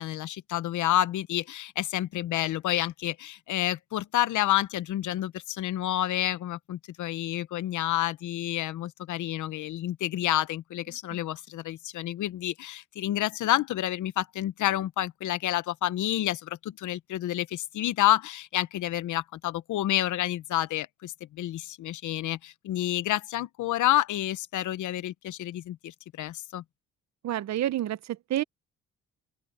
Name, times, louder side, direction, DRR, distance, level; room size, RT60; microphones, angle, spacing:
voice 1, 0.0-26.6, left 13 dB, 75° left, 1.0 m, -29 dB
voice 2, 27.2-28.4, right 13 dB, 65° right, 0.8 m, -29 dB
open air
cardioid pair, 90°, 30 cm